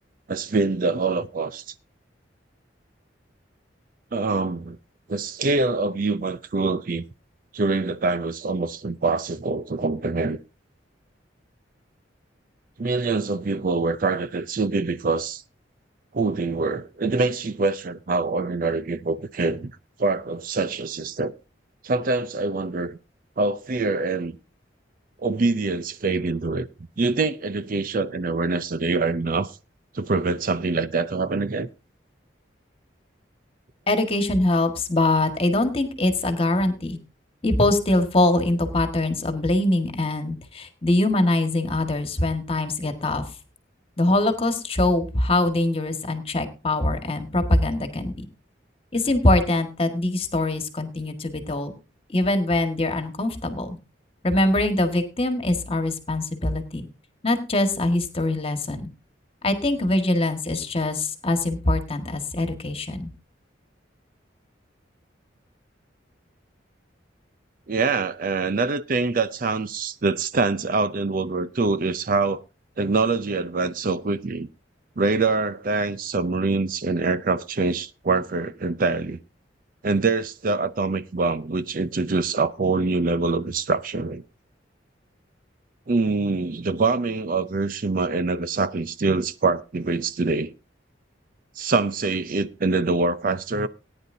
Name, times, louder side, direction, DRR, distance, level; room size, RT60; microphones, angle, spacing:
voice 1, 0.3-1.6 4.1-4.8 5.1-7.0 7.5-10.4 12.8-15.4 16.1-21.3 21.8-23.0 23.4-24.4 25.2-26.7 27.0-29.5 29.9-31.7 67.7-72.4 72.8-74.5 75.0-79.2 79.8-84.2 85.9-90.5 91.6-93.7, right 3 dB, 45° right, 0.5 m, -24 dB
voice 2, 33.9-37.0 37.4-43.3 44.0-48.3 48.9-51.7 52.1-53.8 54.2-56.9 57.2-58.9 59.4-63.1, left 2 dB, 30° left, 1.7 m, -23 dB
18.5 x 9.9 x 2.7 m
head